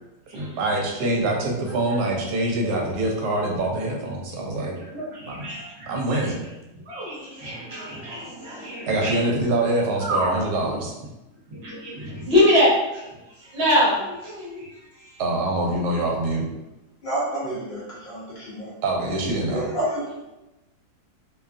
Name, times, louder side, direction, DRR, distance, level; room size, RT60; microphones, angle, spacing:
voice 1, 0.3-4.8 5.2-5.5 5.9-6.4 8.9-10.9 15.2-16.5 18.8-19.7, right 2 dB, 70° right, 0 dB, 1.1 m, -25 dB
voice 2, 4.9-6.3 6.9-9.3 10.0-10.7 11.5-13.1 13.4-15.2, left 1 dB, 50° right, -6 dB, 0.9 m, -25 dB
voice 3, 17.0-18.7 19.5-20.2, right 1 dB, 60° left, -7 dB, 0.6 m, -29 dB
2.8 x 2.3 x 2.4 m, 0.98 s
omnidirectional pair, 1.9 m